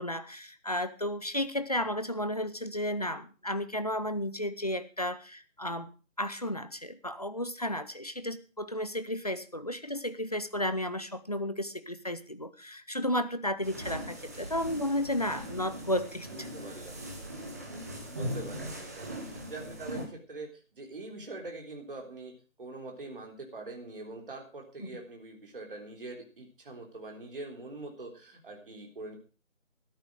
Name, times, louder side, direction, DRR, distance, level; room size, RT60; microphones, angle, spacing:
voice 1, 0.0-5.9 6.2-16.5 24.8-24.9, left 1 dB, 30° left, 12 dB, 0.7 m, -33 dB
sound 1, 13.6-20.1, equal, 10° right, 1.1 m, -40 dB
voice 2, 16.3-17.1 18.1-22.3 22.6-29.2, right 2 dB, 40° right, 1 dB, 3.6 m, -44 dB
13.5 x 12.0 x 5.0 m, 0.35 s
figure-of-eight pair, 160°, 40 cm